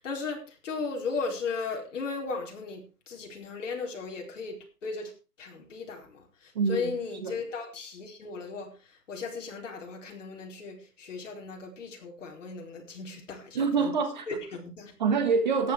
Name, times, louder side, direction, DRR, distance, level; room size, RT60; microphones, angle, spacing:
voice 1, 0.0-5.1 5.4-8.7 9.1-13.9 14.3-14.9, left 4 dB, 50° left, 4.5 m, -36 dB
voice 2, 6.5-6.9 7.2-7.4 13.5-14.3 15.0-15.7, right 5 dB, 30° right, 1.5 m, -25 dB
13.5 x 9.7 x 4.8 m
hypercardioid pair, 175°, 47 cm